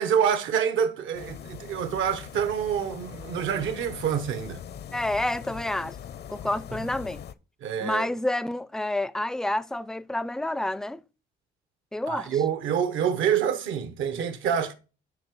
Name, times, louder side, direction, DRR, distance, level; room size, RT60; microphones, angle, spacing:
voice 1, 0.0-4.6 7.6-8.1 12.1-14.7, right 8 dB, 80° right, 1.0 m, -27 dB
sound 1, 1.1-7.3, left 9 dB, 55° left, 0.6 m, -41 dB
voice 2, 4.9-6.0 6.3-7.2 7.8-11.0 11.9-12.3, left 1 dB, 5° left, 0.4 m, -29 dB
8.1 x 5.2 x 4.6 m
cardioid pair, 90°, 20 cm